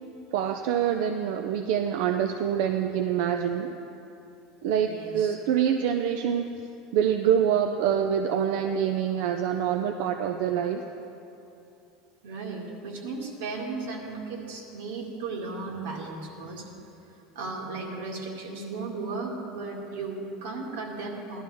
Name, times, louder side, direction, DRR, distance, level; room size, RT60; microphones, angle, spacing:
voice 1, 0.3-3.7 4.6-6.4 6.9-10.8, right 9 dB, 60° right, 5 dB, 0.5 m, -25 dB
voice 2, 4.8-5.4 12.2-16.7 17.3-21.4, right 3 dB, 85° right, -1 dB, 2.1 m, -35 dB
17.0 x 12.0 x 3.5 m, 2.8 s
cardioid pair, 175°, 0 cm